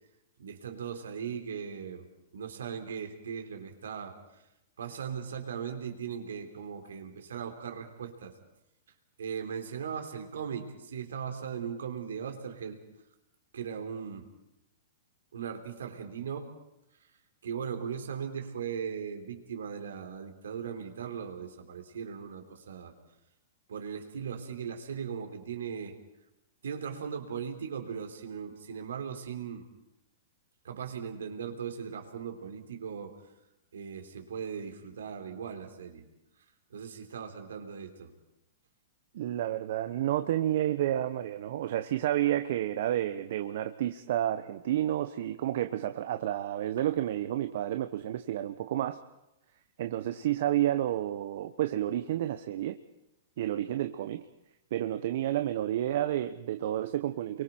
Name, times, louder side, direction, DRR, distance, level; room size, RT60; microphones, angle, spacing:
voice 1, 0.4-2.1 2.3-4.2 4.8-8.3 9.2-12.8 13.5-14.3 15.3-16.5 17.4-22.9 23.7-26.0 26.6-29.7 30.6-33.2 33.7-36.1 36.7-38.1 46.8-46.9, right 7 dB, 75° right, 5 dB, 3.5 m, -38 dB
voice 2, 39.1-49.0 49.8-52.8 53.4-54.2 54.7-57.4, right 12 dB, 60° right, 9 dB, 1.0 m, -30 dB
30.0 x 23.5 x 4.5 m, 0.90 s
hypercardioid pair, 115°, 0 cm